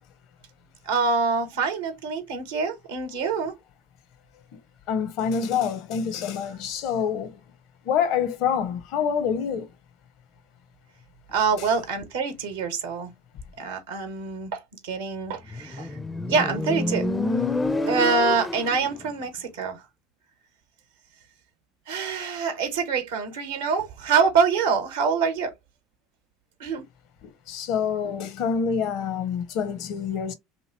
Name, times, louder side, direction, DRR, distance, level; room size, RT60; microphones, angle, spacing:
voice 1, 0.8-3.5 11.3-13.1 13.6-15.9 16.3-17.1 17.8-19.8 21.9-25.5 26.6-26.9, right 5 dB, 75° right, 0.8 m, -25 dB
voice 2, 4.9-7.3 7.9-9.7 27.5-30.3, left 7 dB, 60° left, 0.7 m, -26 dB
Motorcycle, 15.5-19.0, left 2 dB, 15° left, 0.4 m, -28 dB
2.8 x 2.6 x 2.8 m
hypercardioid pair, 75°, 0 cm